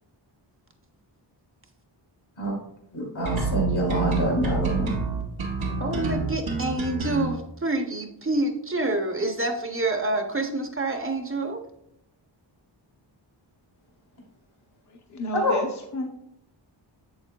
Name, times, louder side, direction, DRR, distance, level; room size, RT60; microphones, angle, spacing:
voice 1, 2.9-4.9 15.3-15.5, right 1 dB, 75° left, 0 dB, 2.6 m, -26 dB
sound 1, 3.3-7.3, right 4 dB, 90° right, 2.1 m, -28 dB
voice 2, 5.8-11.6, right 2 dB, 30° right, 5 dB, 0.6 m, -27 dB
voice 3, 14.9-15.7 15.9-16.3, left 2 dB, 40° left, 1 dB, 0.7 m, -31 dB
7.6 x 7.2 x 2.2 m, 0.79 s
wide cardioid pair, 135°, 46 cm